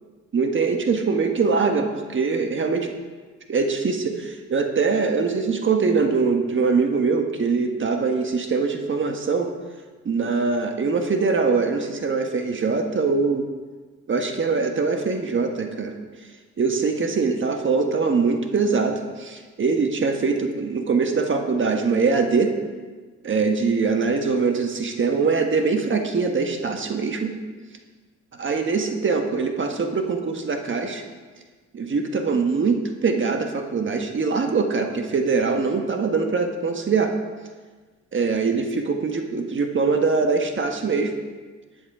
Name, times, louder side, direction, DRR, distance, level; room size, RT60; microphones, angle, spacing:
voice 1, 0.3-2.9 3.5-9.5 10.0-13.5 14.1-15.9 16.6-22.5 23.2-27.3 28.4-31.0 31.7-37.1 38.1-41.1, right 4 dB, 40° right, 5 dB, 1.4 m, -23 dB
11.0 x 9.7 x 4.9 m, 1.4 s
cardioid pair, 90°, 30 cm